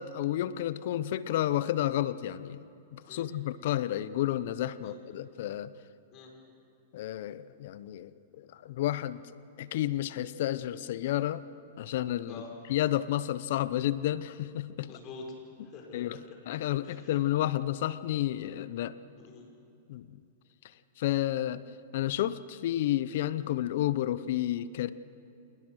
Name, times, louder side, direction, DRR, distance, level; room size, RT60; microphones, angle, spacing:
voice 1, 0.0-2.7 2.9-5.7 6.9-9.2 9.6-11.4 11.8-12.4 12.7-14.9 15.9-19.0 19.9-20.2 21.0-21.6 21.9-24.9, left 13 dB, 65° left, 16 dB, 0.8 m, -31 dB
voice 2, 14.9-15.3 15.6-16.4 16.8-17.1 19.2-19.5, left 4 dB, 40° left, 1 dB, 5.4 m, -47 dB
27.0 x 20.0 x 6.4 m, 2.7 s
hypercardioid pair, 130°, 0 cm